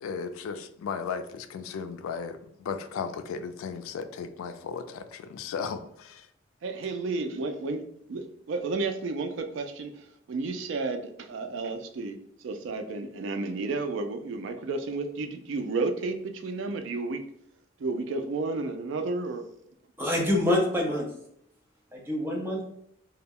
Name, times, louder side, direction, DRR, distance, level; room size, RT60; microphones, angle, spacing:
voice 1, 0.0-6.3, left 6 dB, 90° left, 10 dB, 0.3 m, -35 dB
voice 2, 6.6-10.0 10.3-12.2 12.4-17.2 17.8-19.4, right 3 dB, 65° right, 6 dB, 0.3 m, -32 dB
voice 3, 20.0-21.1 21.9-22.6, left 1 dB, 10° right, -2 dB, 0.5 m, -26 dB
2.2 x 2.0 x 3.4 m, 0.72 s
head